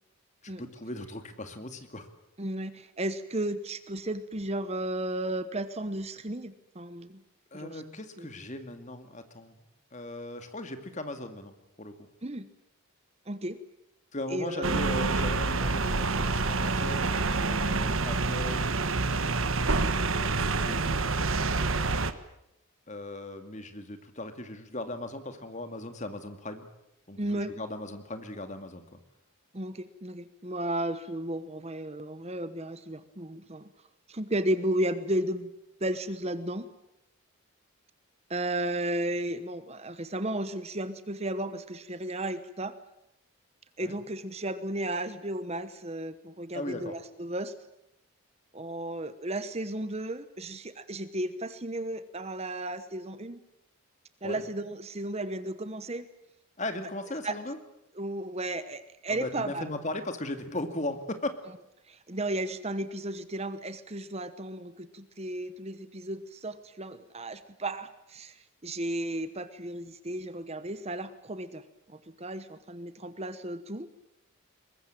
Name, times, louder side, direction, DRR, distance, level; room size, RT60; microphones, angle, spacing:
voice 1, 0.4-2.1 7.5-9.7 9.9-12.0 14.1-18.8 20.6-21.7 22.9-26.7 27.1-29.0 43.8-44.0 46.5-47.0 54.2-54.4 56.6-57.6 59.1-61.4, left 2 dB, 35° left, 8 dB, 2.2 m, -38 dB
voice 2, 2.4-7.2 7.5-7.8 8.2-8.3 12.2-12.5 13.3-13.6 14.3-15.0 27.2-27.5 29.5-33.7 34.1-35.5 35.8-36.6 38.3-42.7 43.8-47.5 48.5-53.4 54.2-56.0 57.2-57.3 58.0-59.7 61.9-71.6 71.9-73.9, right 1 dB, 30° right, 12 dB, 1.1 m, -34 dB
sound 1, 14.6-22.1, right 3 dB, 65° right, 1.4 m, -27 dB
23.0 x 21.0 x 9.0 m, 0.84 s
head